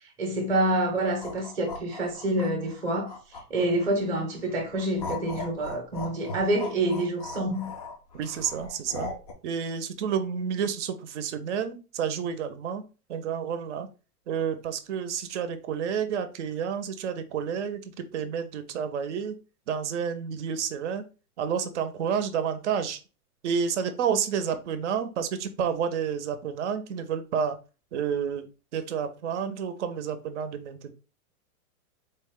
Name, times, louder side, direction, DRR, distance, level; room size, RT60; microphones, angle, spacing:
voice 1, 0.2-3.2 3.5-7.7, right 1 dB, 5° right, 0.6 m, -27 dB
sound 1, 1.0-4.1 4.5-9.3, left 3 dB, 30° left, 0.3 m, -39 dB
voice 2, 8.1-9.1 9.4-12.8 13.1-13.9 14.3-19.4 19.7-21.0 21.4-23.0 23.4-27.6 27.9-28.5 28.7-30.9, right 7 dB, 50° right, 0.6 m, -30 dB
4.0 x 2.2 x 3.5 m
hypercardioid pair, 150°, 46 cm